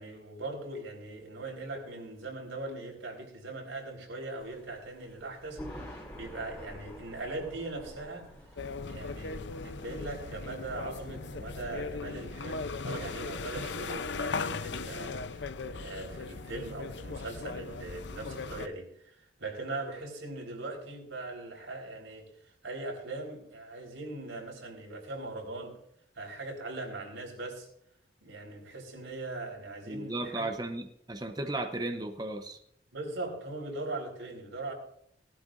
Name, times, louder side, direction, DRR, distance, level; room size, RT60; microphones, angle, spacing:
voice 1, 0.0-8.3 8.8-22.3 22.6-25.7 26.1-27.7 28.2-30.5 32.9-34.7, right 2 dB, 90° right, 1 dB, 4.2 m, -40 dB
Thunder, 4.4-15.9, equal, 10° left, 3.9 m, -50 dB
sound 1, 8.6-18.7, left 4 dB, 70° left, 0.6 m, -38 dB
voice 2, 29.9-32.6, right 2 dB, 20° right, 5 dB, 0.8 m, -35 dB
18.0 x 12.0 x 2.6 m, 0.73 s
head